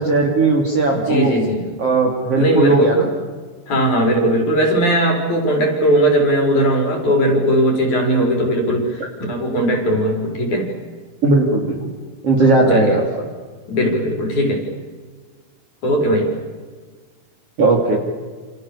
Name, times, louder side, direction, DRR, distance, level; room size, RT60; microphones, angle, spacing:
voice 1, 0.0-1.3 1.8-3.1 11.2-11.9 12.2-13.0 17.6-18.0, right 3 dB, 40° right, 0 dB, 3.8 m, -17 dB
voice 2, 0.9-1.7 2.4-3.0 3.7-10.7 12.4-13.0 13.7-14.7 15.8-16.3, equal, 50° left, 3 dB, 6.1 m, -18 dB
28.5 x 28.0 x 7.1 m, 1.5 s
omnidirectional pair, 4.5 m